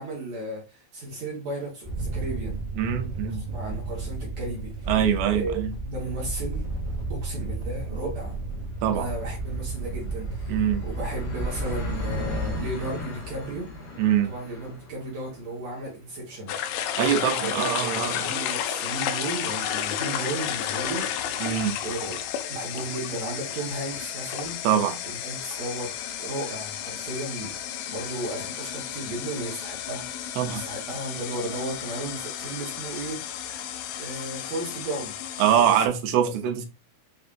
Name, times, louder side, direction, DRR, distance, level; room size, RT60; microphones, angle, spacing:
voice 1, 0.0-2.6 3.2-4.9 5.3-6.7 7.1-8.4 8.9-13.7 14.3-16.5 16.9-17.0 17.4-21.1 21.8-24.6 25.0-25.9 26.2-27.5 27.9-30.1 30.4-33.2 34.0-35.1 35.6-35.8 36.2-36.4, right 2 dB, 60° right, 2.0 m, -34 dB
sound 1, 1.8-12.6, right 3 dB, 20° right, 1.5 m, -32 dB
voice 2, 2.8-3.4 4.9-5.7 8.8-9.1 10.5-10.8 14.0-14.3 17.0-18.3 21.4-21.8 24.6-25.0 30.4-30.6 35.4-36.7, right 9 dB, 85° right, 2.7 m, -23 dB
sound 2, 7.2-18.5, left 2 dB, 65° left, 3.2 m, -39 dB
sound 3, 16.5-35.9, left 10 dB, 80° left, 2.3 m, -32 dB
7.0 x 2.7 x 2.5 m
omnidirectional pair, 4.4 m